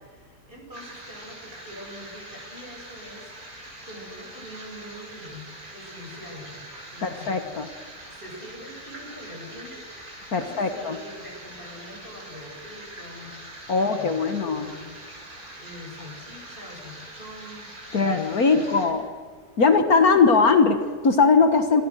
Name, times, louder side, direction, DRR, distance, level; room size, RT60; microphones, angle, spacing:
voice 1, 0.0-3.6 3.8-7.4 8.1-9.8 10.4-13.4 13.7-15.2 15.5-19.0 19.7-20.1, equal, 30° right, -1 dB, 8.3 m, -44 dB
sound 1, 0.7-18.9, right 1 dB, 55° right, 7.4 m, -43 dB
voice 2, 7.0-7.7 10.3-11.0 13.7-14.7 17.9-19.1 19.6-21.8, left 4 dB, 60° left, 8 dB, 1.9 m, -20 dB
27.5 x 27.5 x 6.5 m, 1.5 s
omnidirectional pair, 1.8 m